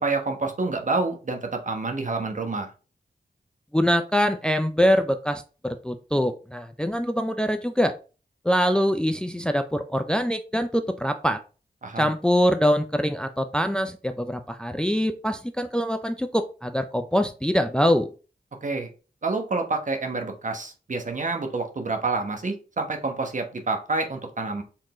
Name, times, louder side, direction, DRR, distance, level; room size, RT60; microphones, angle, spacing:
voice 1, 0.0-2.7 11.8-12.1 18.6-18.9 19.2-24.6, right 3 dB, 45° right, 4 dB, 1.1 m, -28 dB
voice 2, 3.7-7.9 8.4-11.4 12.0-18.1, equal, 5° left, 8 dB, 0.4 m, -24 dB
4.6 x 3.7 x 3.1 m, 0.34 s
cardioid pair, 60°, 17 cm